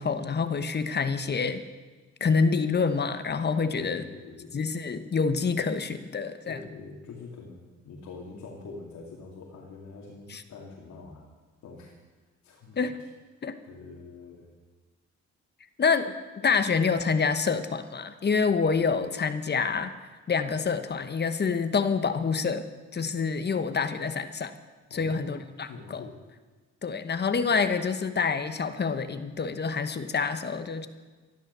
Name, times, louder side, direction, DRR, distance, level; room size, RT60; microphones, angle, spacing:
voice 1, 0.0-1.6 2.2-4.0 4.5-6.6 10.3-10.4 12.8-12.9 13.4-13.6 15.8-19.9 20.3-24.5 24.9-26.0 26.8-30.9, left 5 dB, 35° left, 10 dB, 1.1 m, -27 dB
voice 2, 3.8-4.6 6.4-11.3 11.6-11.9 12.4-12.9 13.6-14.5 24.9-25.4 25.7-26.2, left 3 dB, 70° left, -2 dB, 2.5 m, -44 dB
13.5 x 11.5 x 6.8 m, 1.3 s
cardioid pair, 90°, 30 cm